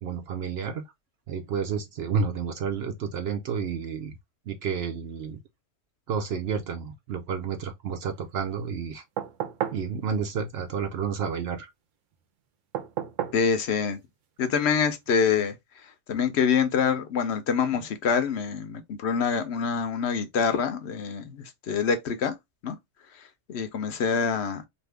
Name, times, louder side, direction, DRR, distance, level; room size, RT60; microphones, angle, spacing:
voice 1, 0.0-0.8 1.3-4.1 4.5-5.4 6.1-9.0 9.7-11.7, right 6 dB, 65° right, 0.7 m, -30 dB
sound 1, 9.2-9.9 12.7-13.5 15.1-15.2, right 10 dB, 85° right, 1.0 m, -32 dB
voice 2, 13.3-14.0 14.4-15.5 16.1-22.3 22.6-22.7 23.5-24.6, left 6 dB, 70° left, 0.8 m, -25 dB
2.6 x 2.5 x 3.3 m
omnidirectional pair, 1.3 m